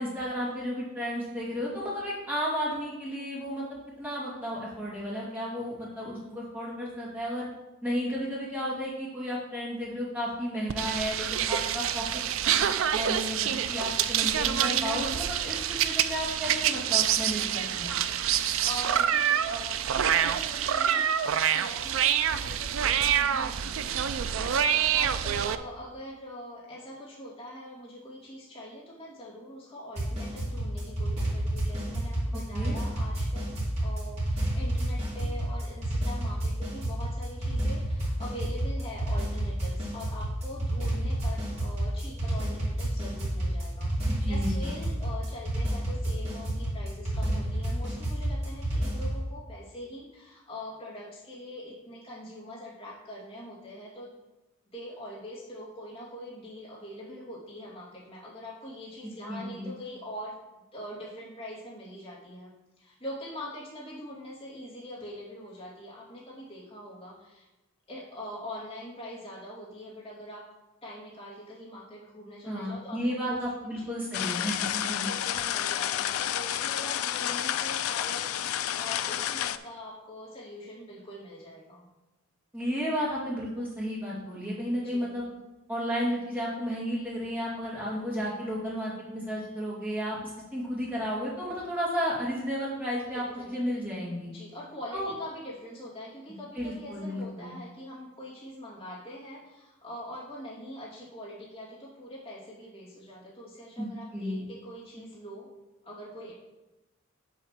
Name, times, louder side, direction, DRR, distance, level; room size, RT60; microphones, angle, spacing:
voice 1, 0.0-3.6 4.0-7.5 7.8-12.1 12.6-15.6 15.8-17.9 32.5-32.8 44.1-44.7 59.3-59.7 72.5-75.1 82.5-85.3 85.7-94.3 94.9-95.1 96.6-97.5 103.8-103.9 104.1-104.4, equal, 10° right, -7 dB, 2.4 m, -33 dB
sound 1, 10.7-25.6, right 9 dB, 65° right, 0.4 m, -27 dB
voice 2, 18.1-54.1 54.7-60.3 60.7-62.5 62.8-67.5 67.9-70.4 70.8-74.0 74.9-81.8 84.8-85.2 93.1-93.6 94.3-105.5 105.8-106.3, equal, 25° left, -8 dB, 2.7 m, -43 dB
sound 2, 30.0-49.2, right 1 dB, 30° right, 2.4 m, -30 dB
sound 3, 74.1-79.6, left 11 dB, 80° left, 0.4 m, -30 dB
7.6 x 3.9 x 6.6 m, 1.0 s
head